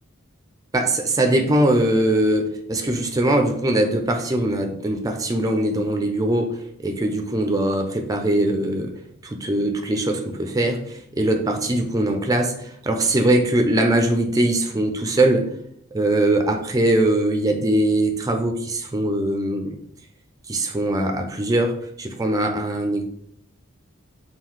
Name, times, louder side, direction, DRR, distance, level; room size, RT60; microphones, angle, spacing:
voice 1, 0.7-8.9 9.2-15.4 15.9-19.8 20.5-23.0, right 1 dB, 15° right, 4 dB, 0.4 m, -21 dB
3.7 x 2.4 x 4.6 m, 0.69 s
head